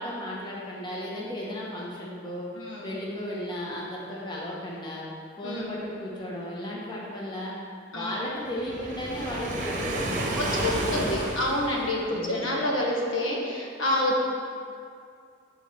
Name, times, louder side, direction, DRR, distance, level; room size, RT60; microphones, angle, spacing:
voice 1, 0.0-2.5 2.8-5.0 5.4-7.5 7.9-10.9 11.2-11.4 12.1-12.5, left 1 dB, 20° left, -5 dB, 1.1 m, -35 dB
voice 2, 2.5-3.0 5.4-5.7 7.9-8.3 10.4-14.2, left 1 dB, 85° left, -3 dB, 1.4 m, -28 dB
Waves surf, 8.6-12.1, right 1 dB, 40° right, 0.9 m, -31 dB
8.2 x 4.3 x 5.5 m, 2.3 s
head